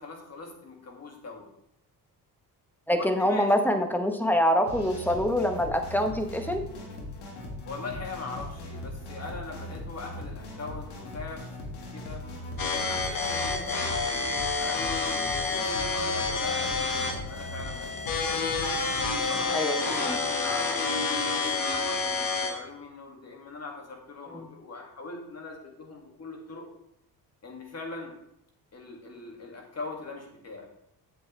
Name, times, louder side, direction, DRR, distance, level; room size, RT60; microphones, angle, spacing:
voice 1, 0.0-1.5 3.2-3.5 7.6-12.2 12.7-14.3 14.6-18.5 19.1-26.7 27.4-28.1 28.7-30.7, left 3 dB, 40° left, 1 dB, 2.2 m, -41 dB
voice 2, 2.9-6.6 19.5-20.2, equal, 5° left, 6 dB, 1.0 m, -25 dB
sound 1, 4.7-19.4, left 1 dB, 90° left, 1.9 m, -40 dB
sound 2, 12.6-22.6, left 4 dB, 60° left, 1.7 m, -29 dB
8.4 x 7.8 x 3.3 m, 0.78 s
cardioid pair, 100°, 39 cm